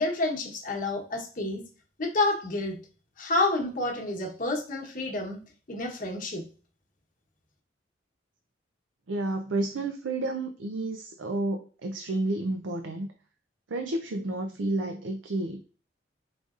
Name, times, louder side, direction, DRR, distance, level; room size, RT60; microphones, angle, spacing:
voice 1, 0.0-1.6 2.0-2.8 3.2-5.4 5.7-6.4, left 2 dB, 45° left, 1 dB, 1.1 m, -29 dB
voice 2, 9.1-13.1 13.7-15.6, right 2 dB, 90° right, 5 dB, 0.5 m, -31 dB
5.0 x 3.9 x 2.4 m, 0.38 s
head